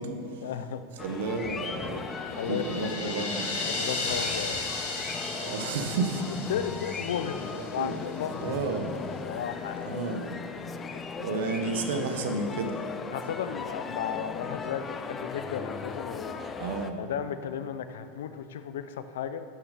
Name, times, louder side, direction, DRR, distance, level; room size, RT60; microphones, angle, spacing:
voice 1, 0.1-0.8 2.3-3.1 3.6-4.6 6.3-8.6 8.9-10.0 11.2-11.5 13.1-16.4 17.0-19.4, left 8 dB, 80° left, 11 dB, 0.6 m, -35 dB
sound 1, 1.0-16.9, left 5 dB, 15° left, 0.4 m, -37 dB
voice 2, 1.0-2.0 2.5-3.5 5.3-6.3 7.5-7.9 8.4-9.0 9.8-10.4 11.2-12.8 15.7-15.8 16.6-17.0, right 4 dB, 70° right, 6 dB, 1.2 m, -31 dB
sound 2, 2.0-8.2, left 3 dB, 60° left, 2.7 m, -35 dB
11.5 x 7.0 x 6.7 m, 2.6 s
supercardioid pair, 175°, 0 cm